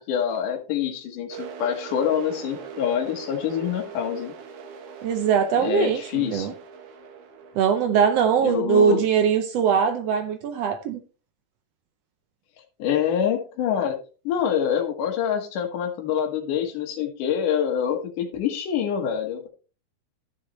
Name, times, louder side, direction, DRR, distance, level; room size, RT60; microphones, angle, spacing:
voice 1, 0.1-4.3 5.6-6.5 8.4-9.0 12.8-14.0 14.2-19.5, left 8 dB, 80° left, 3 dB, 2.8 m, -26 dB
sound 1, 1.3-8.9, right 6 dB, 60° right, 1.9 m, -41 dB
voice 2, 5.0-6.5 7.6-11.0, right 7 dB, 80° right, 9 dB, 1.4 m, -21 dB
13.0 x 6.8 x 3.0 m, 0.34 s
omnidirectional pair, 3.7 m